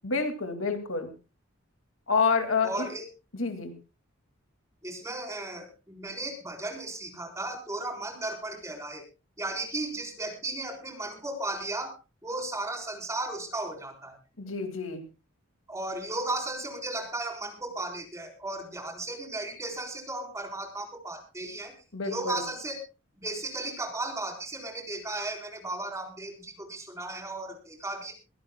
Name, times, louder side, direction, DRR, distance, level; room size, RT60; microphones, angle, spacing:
voice 1, 0.0-1.1 2.1-2.9 3.3-3.7 14.4-15.0 21.9-22.4, left 4 dB, 70° left, 7 dB, 2.3 m, -28 dB
voice 2, 2.6-3.1 4.8-9.0 9.4-11.9 12.2-14.2 15.7-21.7 22.0-22.7 23.2-28.1, right 2 dB, 15° right, 1 dB, 4.0 m, -35 dB
23.0 x 16.5 x 2.2 m, 0.31 s
head